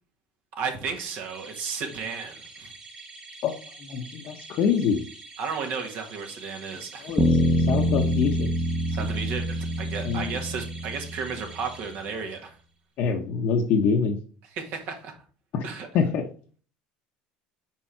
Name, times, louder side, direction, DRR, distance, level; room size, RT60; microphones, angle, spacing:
voice 1, 0.6-2.7 5.4-7.1 8.9-12.5 14.4-15.1 15.6-15.9, right 5 dB, 65° right, 3 dB, 1.6 m, -33 dB
sound 1, 0.7-12.6, right 3 dB, 30° right, 1.7 m, -46 dB
voice 2, 3.8-5.0 7.0-7.2 7.7-8.5 10.0-10.3 13.0-14.2 15.5-15.6 15.9-16.2, left 6 dB, 55° left, 2 dB, 0.8 m, -25 dB
sound 2, 7.2-11.5, equal, 10° right, 0.9 m, -25 dB
5.2 x 4.5 x 4.4 m, 0.41 s
supercardioid pair, 120°, 3 cm